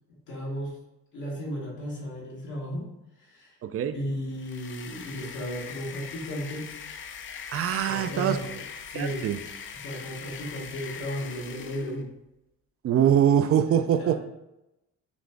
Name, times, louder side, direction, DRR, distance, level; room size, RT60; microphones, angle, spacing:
voice 1, 0.1-0.8 1.1-2.9 3.2-3.6 3.9-6.7 7.8-9.2 9.8-12.1 13.6-14.2, equal, 85° left, -5 dB, 1.5 m, -35 dB
voice 2, 3.6-3.9 7.5-8.4 8.9-9.4 12.8-14.2, right 9 dB, 50° right, 10 dB, 0.4 m, -23 dB
sound 1, 4.3-12.0, left 6 dB, 40° left, 0.5 m, -41 dB
5.9 x 2.4 x 3.4 m, 0.91 s
cardioid pair, 90°, 30 cm